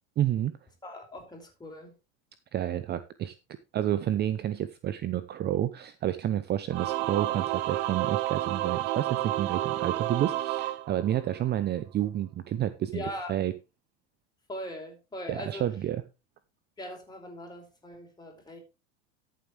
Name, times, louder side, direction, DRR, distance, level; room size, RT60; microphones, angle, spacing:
voice 1, 0.2-0.6 2.5-3.3 3.7-13.0 13.3-13.5 15.3-16.0, right 11 dB, 30° right, 0.7 m, -30 dB
voice 2, 0.8-1.9 12.9-13.4 14.5-15.7 16.8-18.6, left 1 dB, 10° left, 4.9 m, -40 dB
Singing / Musical instrument, 6.7-11.6, right 15 dB, 70° right, 0.8 m, -30 dB
13.0 x 7.5 x 3.4 m
hypercardioid pair, 110°, 33 cm